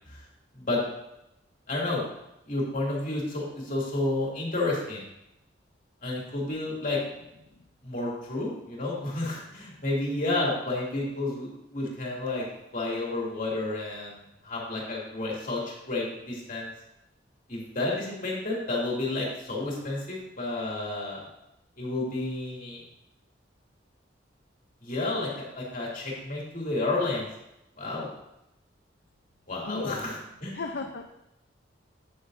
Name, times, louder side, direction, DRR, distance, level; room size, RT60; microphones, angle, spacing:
voice 1, 1.7-2.0 2.5-5.0 6.0-7.0 7.8-12.4 12.7-14.2 14.4-16.7 17.5-21.2 21.8-22.8 24.8-27.3 27.8-28.1 29.5-30.6, left 2 dB, 45° left, -4 dB, 2.5 m, -31 dB
voice 2, 29.7-30.0 30.5-31.1, left 3 dB, 60° left, 4 dB, 0.5 m, -34 dB
9.0 x 8.7 x 2.6 m, 0.87 s
head